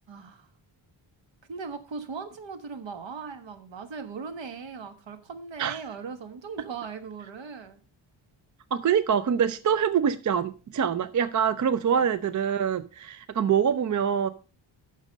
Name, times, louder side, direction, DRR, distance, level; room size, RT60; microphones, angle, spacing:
voice 1, 0.1-0.5 1.5-7.8 11.9-12.1, right 5 dB, 65° right, 1.5 m, -39 dB
voice 2, 8.7-14.3, right 8 dB, 40° right, 0.4 m, -25 dB
9.0 x 6.4 x 5.2 m
wide cardioid pair, 135°, 48 cm